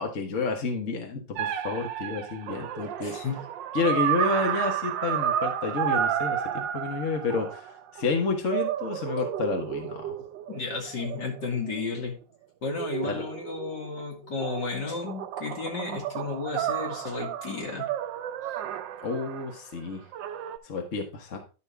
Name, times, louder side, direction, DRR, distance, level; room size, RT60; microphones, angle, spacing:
voice 1, 0.0-3.1 3.7-10.2 13.0-13.2 19.0-20.0 20.6-21.4, left 4 dB, 45° left, 2 dB, 1.5 m, -30 dB
sound 1, 1.4-8.1 8.5-11.8 12.7-14.0 14.4-19.5 20.1-20.6, right 10 dB, 80° right, 1.3 m, -32 dB
voice 2, 3.0-3.4 10.5-12.2 12.6-17.9, left 4 dB, 70° left, 0 dB, 2.8 m, -33 dB
11.0 x 5.7 x 3.4 m, 0.33 s
omnidirectional pair, 2.0 m